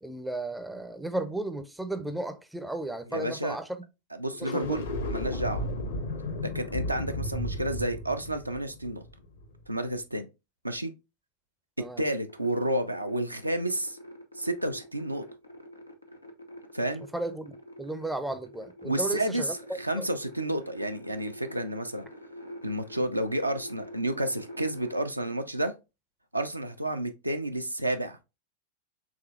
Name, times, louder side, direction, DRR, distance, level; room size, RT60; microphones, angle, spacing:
voice 1, 0.0-3.7 4.4-4.8 11.8-12.0 17.1-17.5 17.8-20.1, right 2 dB, 5° right, 0.5 m, -34 dB
voice 2, 3.1-3.6 4.1-5.6 6.4-9.0 9.7-10.3 10.6-10.9 11.8-14.0 14.4-15.2 16.7-17.0 18.8-22.1 22.6-25.7 26.3-28.2, right 1 dB, 85° right, 0.4 m, -30 dB
sound 1, 4.3-9.6, left 1 dB, 65° left, 1.0 m, -34 dB
sound 2, 12.3-25.0, equal, 90° left, 0.8 m, -47 dB
4.9 x 3.2 x 2.3 m
figure-of-eight pair, 90°, 0 cm